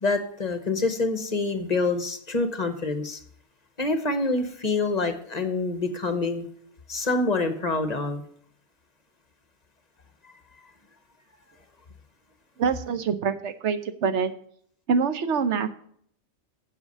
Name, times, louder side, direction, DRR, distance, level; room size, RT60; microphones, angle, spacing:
voice 1, 0.0-3.2 3.8-6.4 6.9-8.2 10.2-10.3, left 3 dB, 40° left, 8 dB, 1.0 m, -26 dB
voice 2, 12.6-14.3 14.9-15.7, right 6 dB, 75° right, 11 dB, 1.1 m, -25 dB
8.1 x 7.6 x 5.3 m, 0.63 s
omnidirectional pair, 1.2 m